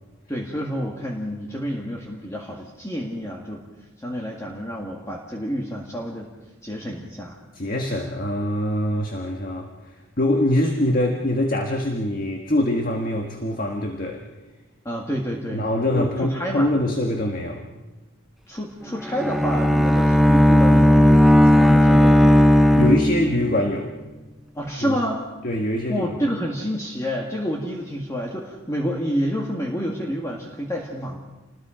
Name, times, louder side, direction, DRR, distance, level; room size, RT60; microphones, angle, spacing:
voice 1, 0.3-3.6 4.0-6.3 6.6-7.4 14.8-16.7 18.5-22.4 24.6-25.2 25.9-31.2, equal, 15° left, -1 dB, 2.0 m, -29 dB
voice 2, 7.5-9.7 10.2-14.2 15.5-17.6 22.7-23.9 24.8-25.0 25.4-26.2, left 1 dB, 45° left, 2 dB, 1.8 m, -23 dB
Bowed string instrument, 19.0-23.7, left 1 dB, ahead, 0.8 m, -15 dB
28.5 x 20.5 x 5.1 m, 1.2 s
head